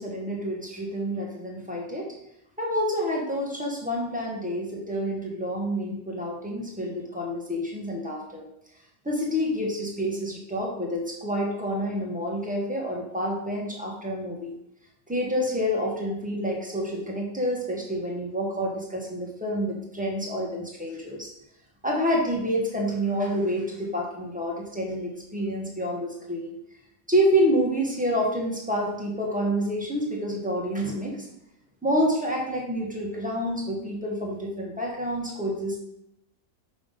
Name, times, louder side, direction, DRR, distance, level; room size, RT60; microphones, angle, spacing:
voice 1, 0.0-2.1 2.6-8.4 9.0-14.5 15.1-21.3 21.8-26.5 27.1-31.3 31.8-35.8, equal, 5° right, -3 dB, 1.1 m, -28 dB
6.2 x 3.6 x 5.3 m, 0.80 s
omnidirectional pair, 1.7 m